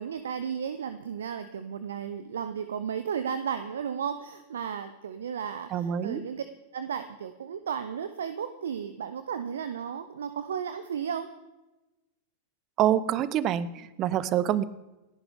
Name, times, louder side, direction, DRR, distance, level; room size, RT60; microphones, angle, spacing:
voice 1, 0.0-6.4 6.7-11.3, right 7 dB, 65° right, 11 dB, 0.8 m, -34 dB
voice 2, 5.7-6.2 12.8-14.6, right 11 dB, 35° right, 18 dB, 0.8 m, -26 dB
29.5 x 11.0 x 3.6 m, 1.0 s
figure-of-eight pair, 90°, 0 cm